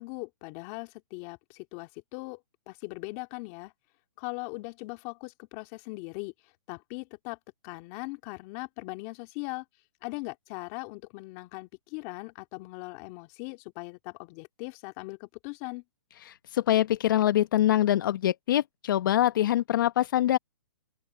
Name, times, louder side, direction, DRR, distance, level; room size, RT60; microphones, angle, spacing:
voice 1, 0.0-2.4 2.7-3.7 4.2-6.3 6.7-7.4 7.6-9.6 10.0-15.8, left 26 dB, 35° left, 2.2 m, -39 dB
voice 2, 16.2-20.4, left 12 dB, 55° left, 0.9 m, -24 dB
open air
hypercardioid pair, 145°, 13 cm